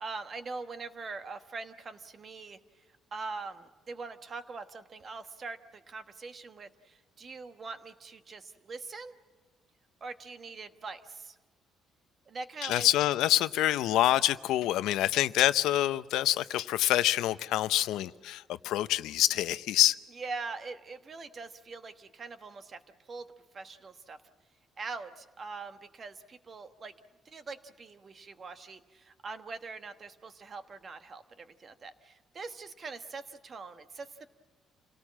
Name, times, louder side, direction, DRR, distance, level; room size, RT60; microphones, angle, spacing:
voice 1, 0.0-2.6 3.1-9.2 10.0-11.4 12.3-12.9 20.2-22.8 23.1-24.2 24.8-26.9 27.2-34.3, right 4 dB, 35° right, 10 dB, 1.2 m, -43 dB
voice 2, 12.6-20.0, left 14 dB, 85° left, 15 dB, 0.6 m, -26 dB
28.0 x 18.0 x 7.4 m, 1.4 s
cardioid pair, 145°, 0 cm